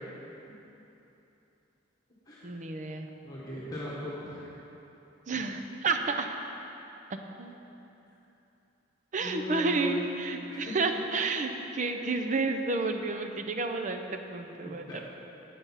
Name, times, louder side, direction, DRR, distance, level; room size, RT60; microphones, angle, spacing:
voice 1, 2.4-3.1 5.3-6.3 7.4-7.6 9.1-15.0, right 3 dB, 40° right, 5 dB, 0.6 m, -31 dB
voice 2, 3.2-4.5 9.2-10.1 10.5-10.8 14.5-15.0, left 1 dB, 20° left, -8 dB, 1.4 m, -38 dB
8.3 x 6.9 x 5.6 m, 3.0 s
head